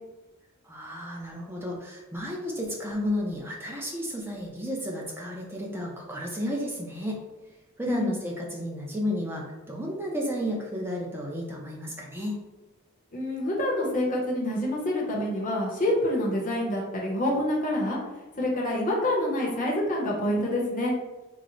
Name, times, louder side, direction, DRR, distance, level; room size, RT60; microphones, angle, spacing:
voice 1, 0.6-7.2 7.8-12.4, equal, 10° right, -1 dB, 0.4 m, -32 dB
voice 2, 13.1-18.0 18.4-20.9, left 1 dB, 35° left, -3 dB, 0.7 m, -27 dB
3.7 x 2.0 x 3.0 m, 1.1 s
head